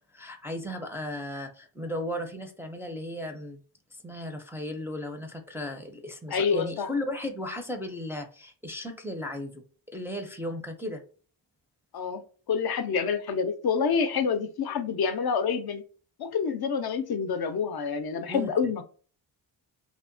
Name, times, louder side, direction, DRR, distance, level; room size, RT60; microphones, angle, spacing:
voice 1, 0.1-3.6 4.0-9.6 9.9-11.0 18.3-18.5, left 1 dB, 5° right, 2 dB, 0.4 m, -35 dB
voice 2, 6.3-6.9 11.9-15.8 16.2-18.8, left 6 dB, 55° left, 9 dB, 0.5 m, -27 dB
2.8 x 2.0 x 2.5 m, 0.41 s
cardioid pair, 65°, 46 cm